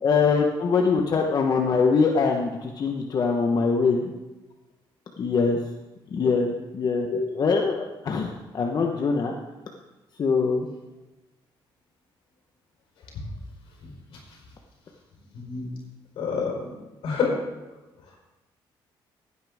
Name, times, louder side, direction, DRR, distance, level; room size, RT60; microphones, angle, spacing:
voice 1, 0.0-4.0 5.2-5.6 6.1-9.3 10.2-10.7, left 5 dB, 45° left, 2 dB, 1.0 m, -23 dB
voice 2, 13.8-14.2 15.3-15.7 16.2-16.8 17.0-17.3, left 5 dB, 85° left, -1 dB, 4.5 m, -28 dB
16.0 x 9.4 x 3.6 m, 1.1 s
cardioid pair, 110°, 9 cm